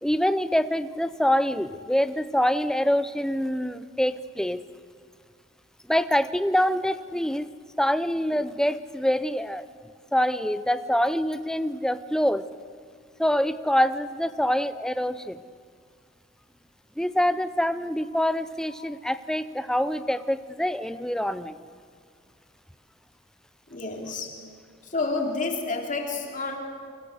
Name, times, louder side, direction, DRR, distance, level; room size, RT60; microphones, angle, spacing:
voice 1, 0.0-4.6 5.9-7.5 7.8-9.7 10.1-12.5 13.2-15.4 17.0-21.6, equal, 5° left, 13 dB, 0.7 m, -25 dB
voice 2, 23.7-24.4 24.8-26.6, left 3 dB, 40° left, 2 dB, 2.9 m, -30 dB
28.5 x 25.0 x 6.6 m, 2.1 s
head